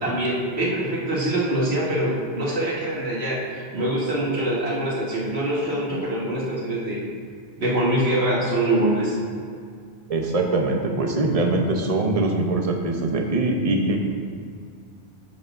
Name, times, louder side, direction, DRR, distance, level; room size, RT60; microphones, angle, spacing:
voice 1, 0.0-7.1 7.6-9.2, right 1 dB, 70° right, -5 dB, 1.9 m, -24 dB
voice 2, 10.1-14.0, right 2 dB, 35° right, 2 dB, 0.8 m, -22 dB
11.0 x 7.3 x 2.6 m, 2.2 s
omnidirectional pair, 1.1 m